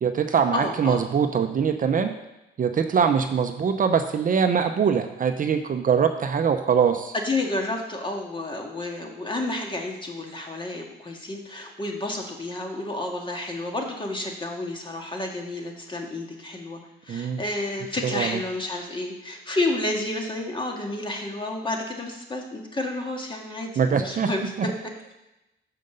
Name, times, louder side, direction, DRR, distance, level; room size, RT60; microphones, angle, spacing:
voice 1, 0.0-2.1 2.6-7.1 17.1-17.4 18.0-18.4 23.8-24.3 24.6-24.7, right 7 dB, 45° right, 7 dB, 0.6 m, -23 dB
voice 2, 0.5-1.0 7.1-24.5, left 2 dB, 25° left, 1 dB, 1.7 m, -30 dB
6.6 x 5.2 x 6.7 m, 0.93 s
cardioid pair, 90°, 20 cm